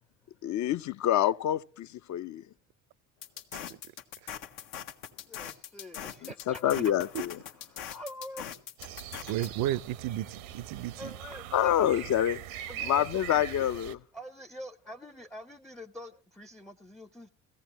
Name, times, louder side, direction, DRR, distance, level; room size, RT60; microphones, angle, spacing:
voice 1, 0.4-2.5 6.2-7.4 11.5-12.4 12.8-14.0, left 11 dB, 45° left, 0.6 m, -27 dB
sound 1, 3.2-9.5, left 9 dB, 75° left, 1.1 m, -42 dB
voice 2, 5.2-6.9 7.7-8.5 9.3-9.5 11.0-12.1 12.7-13.5 14.1-17.3, left 1 dB, ahead, 0.5 m, -45 dB
sound 2, 8.8-14.0, right 10 dB, 80° right, 0.8 m, -42 dB
voice 3, 9.3-11.1, right 13 dB, 55° right, 0.5 m, -33 dB
17.0 x 15.0 x 3.0 m
hypercardioid pair, 60°, 41 cm